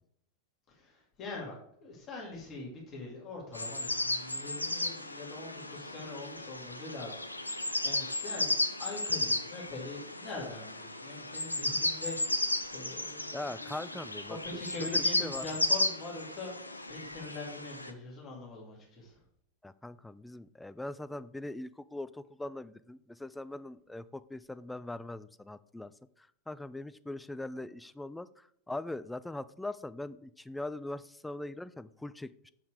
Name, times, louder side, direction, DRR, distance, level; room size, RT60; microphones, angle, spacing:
voice 1, 0.8-12.2 12.7-13.9 14.3-19.2, left 2 dB, 30° left, -2 dB, 2.4 m, -43 dB
sound 1, 3.5-17.9, left 2 dB, 85° left, 0.5 m, -34 dB
voice 2, 13.3-15.5 19.6-25.9 26.5-32.5, left 2 dB, 5° left, 15 dB, 0.3 m, -41 dB
6.5 x 5.5 x 5.1 m, 0.70 s
figure-of-eight pair, 90°, 0 cm